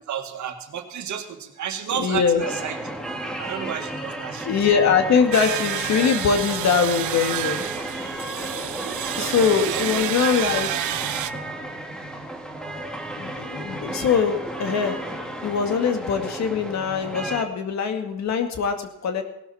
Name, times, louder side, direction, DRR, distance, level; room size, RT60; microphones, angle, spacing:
voice 1, 0.1-2.8 3.4-4.5 8.6-10.0, right 9 dB, 70° right, 5 dB, 2.0 m, -32 dB
voice 2, 1.9-2.4 4.4-7.6 9.2-10.7 13.2-15.0 15.4-19.2, left 6 dB, 65° left, 6 dB, 2.1 m, -22 dB
sound 1, 2.4-17.4, right 1 dB, 5° left, 2.2 m, -33 dB
sound 2, 5.3-11.3, right 15 dB, 85° right, 0.7 m, -29 dB
18.0 x 12.0 x 4.3 m, 0.85 s
cardioid pair, 90°, 30 cm